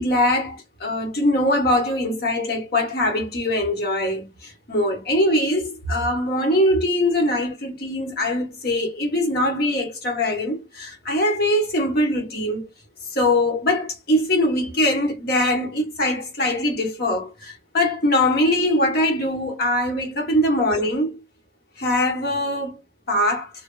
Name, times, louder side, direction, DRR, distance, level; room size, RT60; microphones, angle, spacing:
voice 1, 0.0-12.7 13.1-21.2 21.8-22.8 23.1-23.5, left 1 dB, 55° left, 1.1 m, -22 dB
2.4 x 2.2 x 3.7 m
head